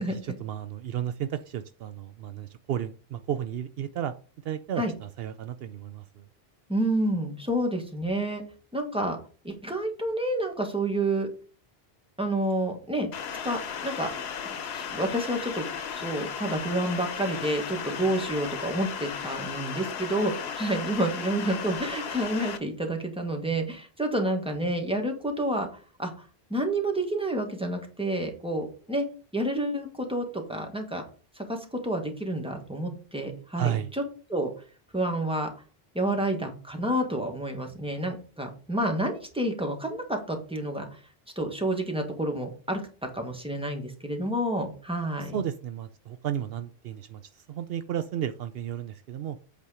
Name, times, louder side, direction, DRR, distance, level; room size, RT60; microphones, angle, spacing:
voice 1, 0.0-4.1 4.4-6.3 33.6-33.9 45.2-49.4, right 10 dB, 75° right, 11 dB, 0.8 m, -33 dB
voice 2, 6.7-8.4 8.7-9.2 9.4-11.3 12.2-13.1 13.4-14.1 14.6-15.6 15.9-25.7 26.0-26.1 26.5-29.1 29.3-31.0 31.3-34.0 34.3-34.5 34.9-35.5 35.9-40.9 41.3-45.4, right 1 dB, 5° right, 3 dB, 1.5 m, -29 dB
sound 1, 13.1-22.6, left 7 dB, 90° left, 1.0 m, -35 dB
8.3 x 4.3 x 4.8 m, 0.38 s
omnidirectional pair, 1.0 m